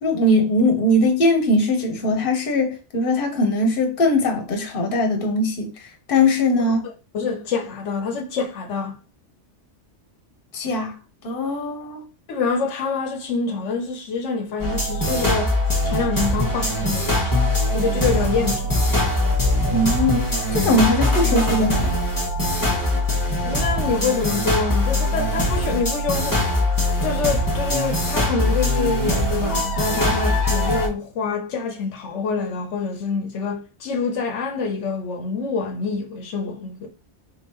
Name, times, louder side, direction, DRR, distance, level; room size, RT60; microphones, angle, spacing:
voice 1, 0.0-5.7 6.1-6.8 10.5-10.9 11.2-12.0 19.7-20.2 20.5-22.0, left 1 dB, 50° left, 1.1 m, -20 dB
voice 2, 7.1-9.0 12.3-15.5 15.8-17.4 17.7-18.7 23.4-26.4 27.0-36.9, left 5 dB, 85° left, 1.0 m, -26 dB
sound 1, 14.6-30.9, left 1 dB, 20° left, 1.0 m, -22 dB
3.8 x 3.5 x 2.9 m
omnidirectional pair, 1.2 m